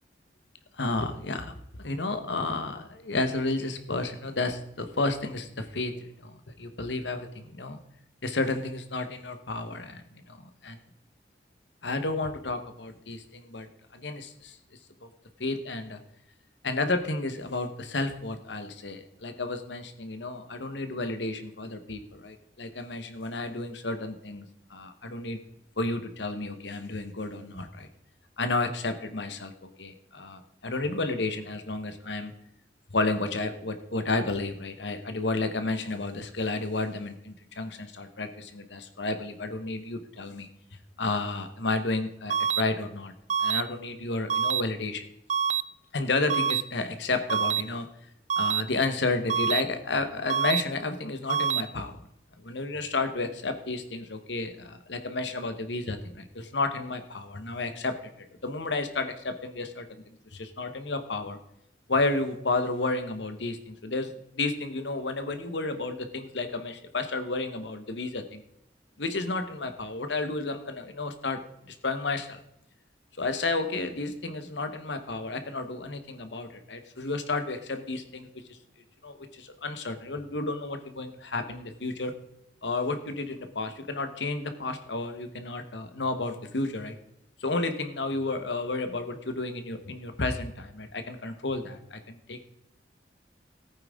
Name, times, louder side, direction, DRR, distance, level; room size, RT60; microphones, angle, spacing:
voice 1, 0.8-1.5 1.8-7.8 8.2-10.8 11.8-13.7 13.9-14.6 15.0-15.1 15.4-16.0 16.6-24.4 24.7-25.4 25.8-27.9 28.4-29.5 29.8-32.3 32.9-40.5 41.0-43.1 43.4-45.0 45.9-47.9 48.4-51.9 52.4-57.9 58.4-61.4 61.9-68.4 69.0-71.4 71.7-72.4 73.2-78.3 79.0-82.1 82.6-87.0 87.4-92.4, left 3 dB, 80° left, 8 dB, 1.3 m, -31 dB
sound 1, 42.3-42.6 43.3-43.6 44.3-44.6 45.3-45.6 46.3-46.6 47.3-47.6 48.3-48.6 49.3-49.6 50.3-50.6 51.3-51.6, right 7 dB, 40° right, 0.4 m, -25 dB
15.0 x 9.0 x 3.7 m, 0.82 s
head